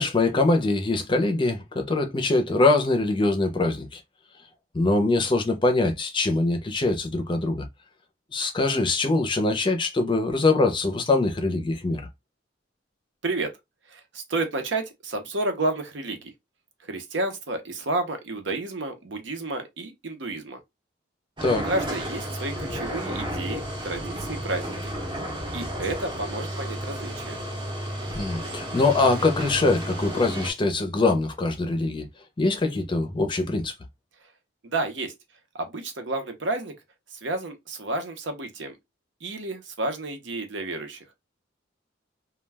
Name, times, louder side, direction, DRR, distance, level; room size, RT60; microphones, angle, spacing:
voice 1, 0.0-4.0 4.7-7.6 8.3-12.0 21.4-21.7 28.1-32.1 32.4-33.7, left 2 dB, 25° left, 0.5 m, -23 dB
voice 2, 13.2-13.5 13.9-16.3 16.8-20.6 21.6-24.9 25.5-27.4 34.6-35.1 35.5-36.7 37.1-38.8 39.2-41.0, right 2 dB, 70° right, 0.7 m, -31 dB
sound 1, 21.4-30.5, equal, 25° right, 0.7 m, -32 dB
2.3 x 2.2 x 3.3 m
head